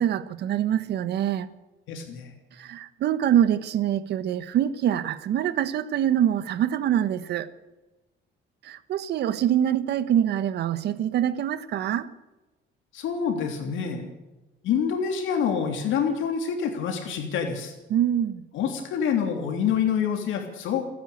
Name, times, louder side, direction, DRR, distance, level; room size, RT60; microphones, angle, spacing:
voice 1, 0.0-1.5 2.6-7.5 8.6-12.1 17.9-18.4, right 10 dB, 55° right, 1.3 m, -24 dB
voice 2, 1.9-2.3 12.9-14.1 14.6-17.7 18.5-20.8, left 7 dB, 70° left, 3.3 m, -27 dB
30.0 x 10.5 x 8.5 m
cardioid pair, 175°, 20 cm